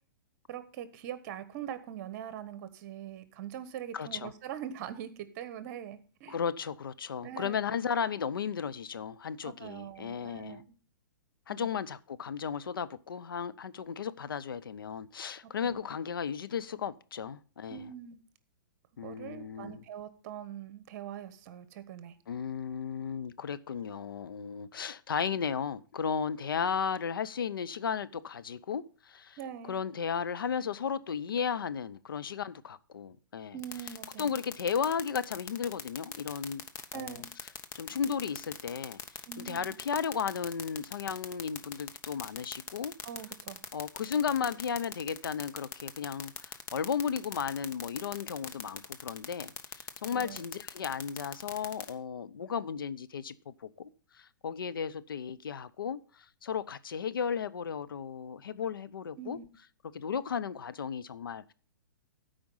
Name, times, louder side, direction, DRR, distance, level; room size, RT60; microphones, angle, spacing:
voice 1, 0.5-6.4 7.2-7.6 9.4-10.7 11.5-11.7 15.4-15.8 17.7-18.2 19.0-22.1 29.4-29.8 33.5-34.3 36.9-37.3 39.3-39.8 43.0-43.6 50.1-50.4 59.2-59.5, right 9 dB, 45° right, 1.3 m, -42 dB
voice 2, 3.9-4.3 6.3-10.6 11.5-17.9 19.0-19.8 22.3-29.4 29.7-33.6 34.2-36.6 36.9-37.1 37.7-39.0 39.4-42.9 43.7-53.9 54.2-56.0 56.4-59.4 59.9-61.5, left 7 dB, 85° left, 0.7 m, -34 dB
sound 1, 33.6-51.9, left 8 dB, 20° left, 0.9 m, -39 dB
13.0 x 5.1 x 5.4 m
hypercardioid pair, 130°, 11 cm